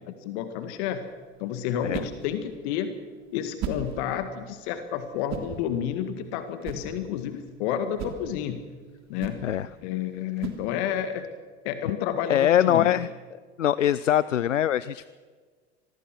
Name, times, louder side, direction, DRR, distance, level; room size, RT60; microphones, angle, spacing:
voice 1, 0.2-1.1 1.4-3.0 3.3-8.7 9.1-9.4 9.8-11.3 11.6-13.0, left 9 dB, 60° left, 9 dB, 1.9 m, -30 dB
sound 1, 0.6-11.2, right 8 dB, 45° right, 3.2 m, -41 dB
voice 2, 12.3-13.1 13.6-15.1, left 10 dB, 85° left, 18 dB, 0.6 m, -22 dB
26.0 x 19.5 x 6.2 m, 1.5 s
figure-of-eight pair, 70°, 37 cm